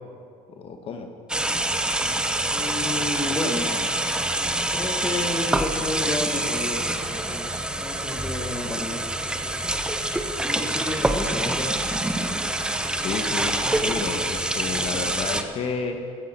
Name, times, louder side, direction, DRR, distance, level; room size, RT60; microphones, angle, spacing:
voice 1, 0.5-1.1 13.0-16.0, left 5 dB, 45° left, 5 dB, 1.2 m, -31 dB
sound 1, 1.3-15.4, right 1 dB, 5° right, 0.8 m, -26 dB
voice 2, 2.5-3.7 4.7-9.7 10.4-11.8, left 2 dB, 15° left, 5 dB, 1.3 m, -31 dB
15.0 x 14.5 x 4.3 m, 2.3 s
cardioid pair, 125°, 14 cm